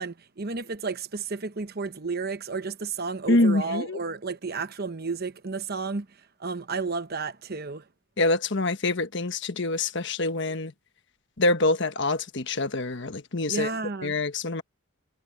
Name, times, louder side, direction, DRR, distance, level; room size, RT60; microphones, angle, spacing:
voice 1, 0.0-6.1 6.4-7.8 13.5-14.2, right 4 dB, 45° right, 1.0 m, -32 dB
voice 2, 3.3-4.0 8.2-10.7 11.4-13.7 14.0-14.6, left 2 dB, 60° left, 1.2 m, -25 dB
head